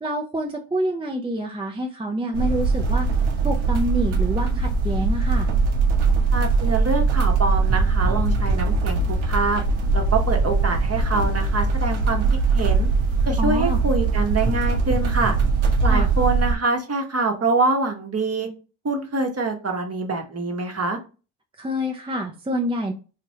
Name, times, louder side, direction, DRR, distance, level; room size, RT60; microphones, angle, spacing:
voice 1, 0.0-3.1 3.4-5.5 13.4-13.8 15.9-16.1 21.6-22.9, right 1 dB, 10° right, 1 dB, 0.5 m, -27 dB
sound 1, 2.3-16.6, right 4 dB, 80° right, 0.8 m, -21 dB
voice 2, 6.3-9.6 9.9-12.2 12.5-12.9 13.3-15.4 15.8-18.5 18.8-21.0, right 3 dB, 30° right, 4 dB, 1.0 m, -25 dB
3.0 x 2.5 x 2.7 m, 0.33 s
supercardioid pair, 55°, 47 cm